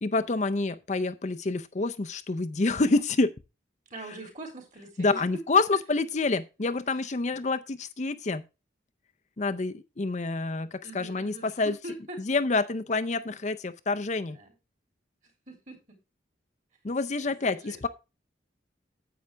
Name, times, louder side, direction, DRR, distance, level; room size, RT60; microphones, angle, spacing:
voice 1, 0.0-3.3 5.0-8.4 9.4-11.8 12.2-14.4 16.8-17.9, left 3 dB, 40° left, 0.5 m, -27 dB
voice 2, 3.9-5.4 7.3-7.5 10.8-11.5 11.8-12.2 14.3-14.5 15.5-16.0 17.2-17.9, right 2 dB, 40° right, 3.2 m, -43 dB
9.6 x 7.9 x 3.3 m
head